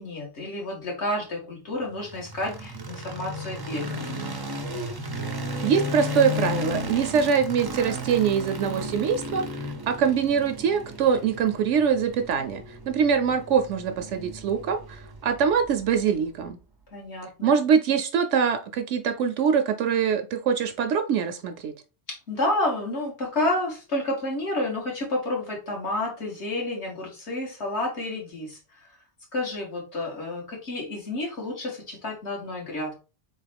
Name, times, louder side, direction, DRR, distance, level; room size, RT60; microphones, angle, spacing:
voice 1, 0.0-4.1 16.9-17.5 22.1-28.9 29.3-32.9, left 1 dB, 60° left, -1 dB, 1.8 m, -30 dB
sound 1, 2.0-16.1, equal, 30° right, 0.4 m, -34 dB
voice 2, 5.6-16.6 17.4-21.7, right 7 dB, 75° right, 8 dB, 0.9 m, -24 dB
4.2 x 3.6 x 3.3 m, 0.32 s
omnidirectional pair, 1.3 m